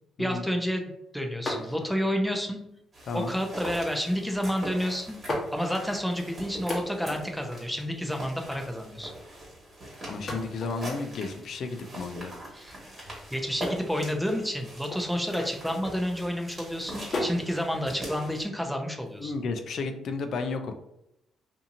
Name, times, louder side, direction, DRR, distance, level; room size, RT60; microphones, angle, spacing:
voice 1, 0.2-2.6 3.1-5.2 5.5-9.1 12.5-19.3, equal, ahead, 3 dB, 0.5 m, -30 dB
sound 1, 1.4-2.1 2.9-3.4 4.4-4.5 5.1-6.0 6.5-7.2 7.5-7.6 7.8-8.8 10.1-16.2 16.7-17.5 17.9-19.7, left 1 dB, 40° left, 1.0 m, -38 dB
sound 2, 2.9-18.4, right 1 dB, 35° right, 1.4 m, -42 dB
voice 2, 10.1-12.3 19.2-20.7, left 4 dB, 60° left, 6 dB, 0.4 m, -32 dB
2.7 x 2.6 x 2.5 m, 0.83 s
cardioid pair, 90°, 0 cm